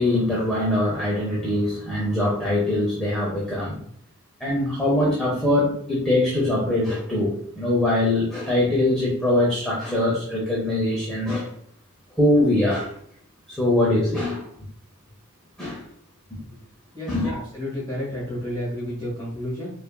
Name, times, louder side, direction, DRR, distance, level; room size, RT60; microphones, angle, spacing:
voice 1, 0.0-3.8 4.4-11.5 12.2-12.9 13.5-14.5 15.6-15.8 16.3-16.4 17.1-17.4, left 1 dB, 5° left, -6 dB, 0.8 m, -22 dB
voice 2, 16.9-19.7, left 1 dB, 20° left, -8 dB, 1.4 m, -31 dB
4.9 x 2.6 x 2.3 m, 0.65 s
head